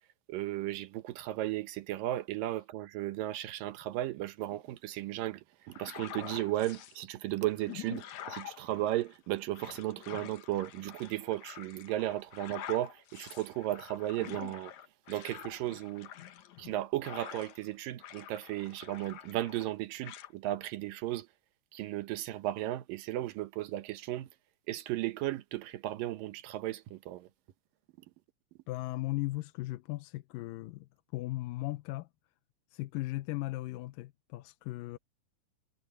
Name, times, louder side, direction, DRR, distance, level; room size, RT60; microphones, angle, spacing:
voice 1, 0.3-14.7 15.1-16.1 16.6-21.3 21.7-24.3 24.7-27.3, right 15 dB, 80° right, 2.6 m, -35 dB
sound 1, 5.7-7.0 7.5-17.7 18.0-19.7 20.0-20.3, left 11 dB, 65° left, 2.4 m, -47 dB
voice 2, 28.7-32.1 32.7-35.0, left 18 dB, 90° left, 2.3 m, -37 dB
omnidirectional pair, 3.9 m